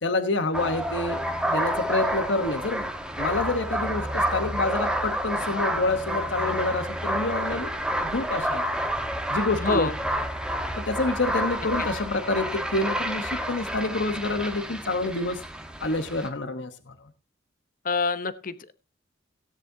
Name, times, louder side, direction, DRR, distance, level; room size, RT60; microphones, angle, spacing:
voice 1, 0.0-1.2 1.5-2.9 3.2-7.7 8.0-8.7 9.3-9.9 10.8-15.4 15.8-16.9, left 2 dB, 65° left, 9 dB, 1.2 m, -27 dB
sound 1, 0.5-16.3, equal, 5° right, 1.2 m, -29 dB
voice 2, 9.6-9.9 11.8-11.9 17.8-18.7, left 4 dB, 45° left, 13 dB, 0.9 m, -26 dB
17.0 x 10.0 x 2.8 m, 0.29 s
head